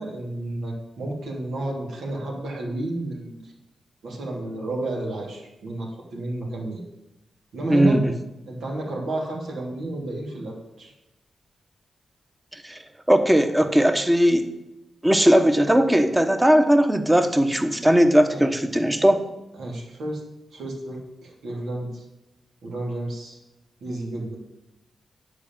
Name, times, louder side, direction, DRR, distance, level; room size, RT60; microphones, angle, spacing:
voice 1, 0.0-3.4 4.0-6.8 7.5-8.0 8.5-10.9 18.3-18.4 19.6-20.2 20.5-22.0 22.6-23.4 23.8-24.4, right 1 dB, 90° right, -2 dB, 3.0 m, -31 dB
voice 2, 7.7-8.1 12.5-12.8 13.1-14.5 15.0-19.2, equal, 10° right, 7 dB, 1.0 m, -18 dB
10.0 x 4.9 x 7.4 m, 0.95 s
cardioid pair, 95°, 0 cm